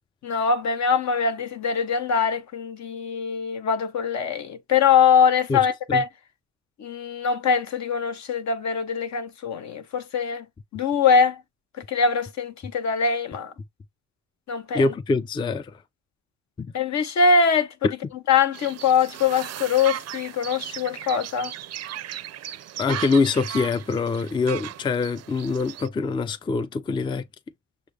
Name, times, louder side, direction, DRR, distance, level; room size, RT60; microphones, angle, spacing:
voice 1, 0.2-6.1 6.8-10.4 10.7-11.4 11.9-13.5 14.5-14.9 16.7-17.7 18.3-21.5, left 5 dB, 65° left, 0.9 m, -22 dB
voice 2, 14.7-15.8 16.6-16.7 22.8-27.2, left 4 dB, 15° left, 0.4 m, -24 dB
sound 1, 18.5-25.9, right 11 dB, 55° right, 0.5 m, -36 dB
6.0 x 2.4 x 3.3 m
cardioid pair, 90°, 30 cm